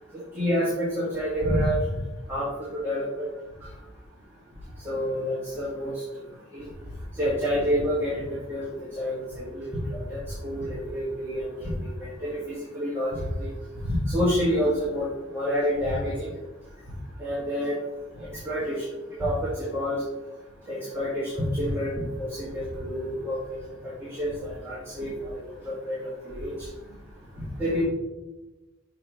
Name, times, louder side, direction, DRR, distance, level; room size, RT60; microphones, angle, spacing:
voice 1, 0.1-1.8 2.3-3.3 4.9-5.9 6.5-6.6 7.2-12.4 12.7-13.1 13.4-13.5 13.8-15.1 15.3-16.3 17.2-17.8 18.4-18.8 19.2-20.0 20.7-23.4 23.8-23.9 24.2-25.4 25.7-26.0 26.2-26.5 27.6-27.8, equal, 10° right, -10 dB, 1.8 m, -28 dB
6.6 x 6.3 x 3.1 m, 1.1 s
head